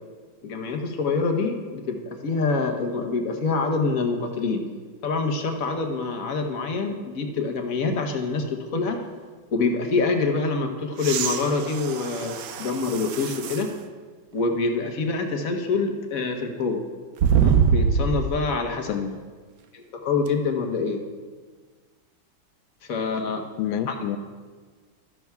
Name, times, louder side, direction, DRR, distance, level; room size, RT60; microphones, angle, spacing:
voice 1, 0.4-2.0 2.2-4.6 5.0-9.0 9.5-13.7 14.3-16.8 17.4-19.0 19.7-21.0 22.9-23.4 23.9-24.0, left 4 dB, 55° left, 4 dB, 1.1 m, -26 dB
sound 1, 11.0-13.7 14.4-14.5 17.2-18.4 20.3-20.4, right 6 dB, 80° right, 0.8 m, -24 dB
voice 2, 18.9-19.2 23.6-24.2, left 9 dB, 80° left, 10 dB, 1.3 m, -28 dB
13.5 x 11.0 x 2.3 m, 1.5 s
omnidirectional pair, 2.2 m